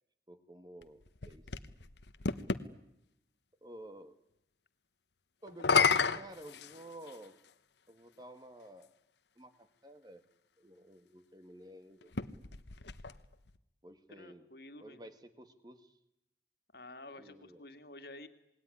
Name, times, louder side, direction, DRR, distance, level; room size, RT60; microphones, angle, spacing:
voice 1, 0.3-1.4 3.6-4.1 5.4-7.4 7.9-8.9 9.4-10.2 10.6-12.1 13.8-14.5 14.8-16.0 17.2-17.6, right 1 dB, 20° right, 9 dB, 1.8 m, -52 dB
sound 1, 0.8-2.7 5.5-7.3 8.2-8.3 12.0-13.6, left 5 dB, 75° left, 1.1 m, -32 dB
voice 2, 14.1-15.1 16.7-18.3, left 2 dB, 55° left, 7 dB, 2.2 m, -51 dB
27.0 x 20.5 x 9.9 m, 0.84 s
head